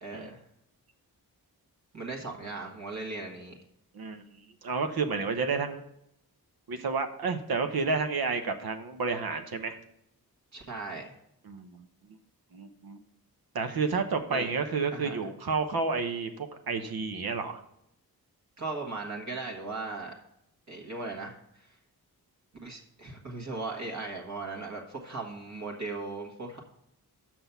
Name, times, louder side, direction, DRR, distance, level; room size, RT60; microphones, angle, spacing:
voice 1, 0.0-0.4 1.9-3.6 10.5-11.1 14.3-14.5 14.9-15.2 18.6-20.1 20.7-21.7 22.6-26.6, right 3 dB, 45° right, 0 dB, 1.6 m, -38 dB
voice 2, 4.6-5.8 6.7-9.8 11.5-11.8 12.5-13.0 13.5-17.6, right 4 dB, 70° right, 7 dB, 0.9 m, -30 dB
6.2 x 6.0 x 6.8 m, 0.79 s
wide cardioid pair, 80°, 38 cm